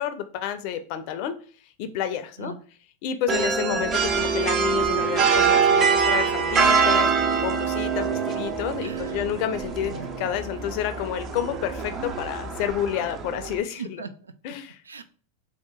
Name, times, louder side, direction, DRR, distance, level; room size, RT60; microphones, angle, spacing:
voice 1, 0.0-1.4 1.8-2.5 3.0-14.0 14.4-14.8, left 9 dB, 55° left, 10 dB, 0.5 m, -30 dB
sound 1, 3.3-13.6, right 6 dB, 30° right, 0.5 m, -24 dB
sound 2, 4.0-12.9, left 1 dB, 55° right, 0.8 m, -40 dB
voice 2, 8.8-9.2 9.8-10.1 13.8-14.3 14.9-15.0, right 5 dB, 90° right, 11 dB, 0.3 m, -38 dB
2.9 x 2.4 x 3.6 m, 0.42 s
hypercardioid pair, 95°, 0 cm